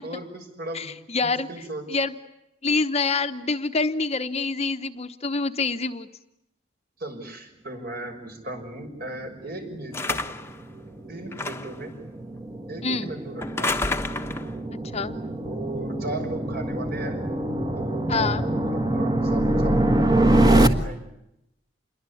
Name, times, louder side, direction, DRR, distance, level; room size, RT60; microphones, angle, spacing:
voice 1, 0.0-0.9 1.2-1.8 7.0-10.2 11.1-11.9 12.7-13.8 15.4-17.2 17.7-20.1 20.5-21.0, right 1 dB, 50° right, 5 dB, 6.4 m, -36 dB
voice 2, 0.7-1.5 1.9-2.1 2.6-6.1 10.1-10.2 12.8-13.1 14.9-15.2 18.1-18.4, left 3 dB, 30° left, 9 dB, 1.0 m, -26 dB
sound 1, 9.6-20.7, right 1 dB, 20° right, 1.6 m, -24 dB
sound 2, 9.9-10.6 11.3-11.8 13.4-14.5, left 3 dB, 15° left, 1.1 m, -29 dB
28.0 x 22.5 x 8.5 m, 0.84 s
head